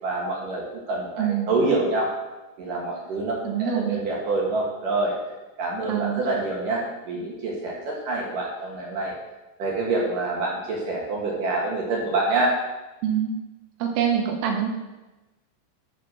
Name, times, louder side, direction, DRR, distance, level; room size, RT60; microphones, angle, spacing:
voice 1, 0.0-2.1 2.6-5.2 5.6-9.1 9.6-12.5, right 2 dB, 55° right, -2 dB, 2.6 m, -26 dB
voice 2, 1.2-1.5 3.4-4.0 5.9-6.3 13.0-13.3 13.8-14.7, right 8 dB, 80° right, 2 dB, 4.3 m, -25 dB
12.5 x 6.8 x 6.6 m, 1.1 s
omnidirectional pair, 5.8 m